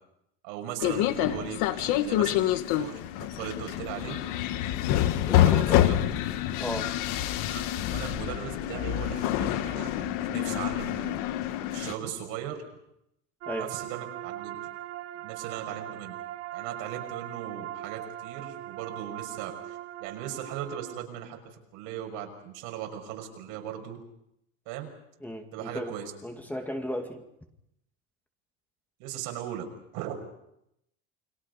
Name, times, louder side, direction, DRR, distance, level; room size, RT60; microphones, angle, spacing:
voice 1, 0.4-4.2 5.4-6.0 7.5-7.6 7.9-11.2 11.7-12.6 13.6-14.6 15.2-16.1 16.5-21.4 21.7-24.0 24.7-24.9 25.5-26.1 29.0-29.6 29.9-30.1, right 10 dB, 80° right, 3 dB, 6.1 m, -38 dB
sound 1, 0.8-11.9, left 13 dB, 65° left, 1.6 m, -27 dB
voice 2, 5.2-5.9 6.6-6.9 13.5-13.7 25.2-25.9 26.2-27.2, equal, 5° left, 3 dB, 2.3 m, -35 dB
sound 2, 13.4-21.0, right 14 dB, 45° right, 1.1 m, -40 dB
29.5 x 23.0 x 5.5 m, 0.80 s
cardioid pair, 155°, 34 cm